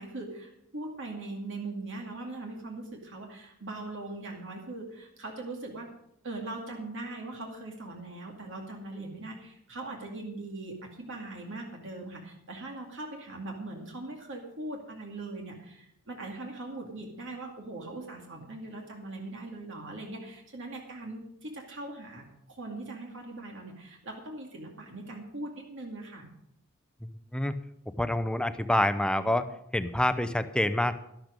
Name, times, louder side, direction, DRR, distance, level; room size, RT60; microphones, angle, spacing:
voice 1, 0.0-5.9 6.2-26.3, right 2 dB, 60° right, 1 dB, 2.3 m, -40 dB
voice 2, 28.0-29.5 29.7-30.9, left 1 dB, 5° left, 11 dB, 0.7 m, -26 dB
12.0 x 12.0 x 5.2 m, 0.77 s
head